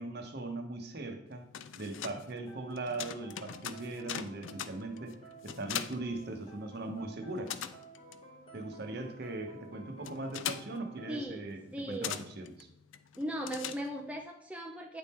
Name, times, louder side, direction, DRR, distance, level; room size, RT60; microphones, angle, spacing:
voice 1, 0.0-1.5 1.8-7.5 8.5-12.7, right 2 dB, 55° right, 5 dB, 0.8 m, -40 dB
sound 1, 1.3-6.9 7.2-14.2, left 9 dB, 75° left, 0.4 m, -42 dB
sound 2, 2.2-11.3, right 3 dB, 25° left, 1.1 m, -54 dB
voice 2, 11.1-11.4 11.7-12.2 13.2-15.0, right 1 dB, 5° right, 2 dB, 0.4 m, -38 dB
8.7 x 3.6 x 4.2 m, 0.73 s
head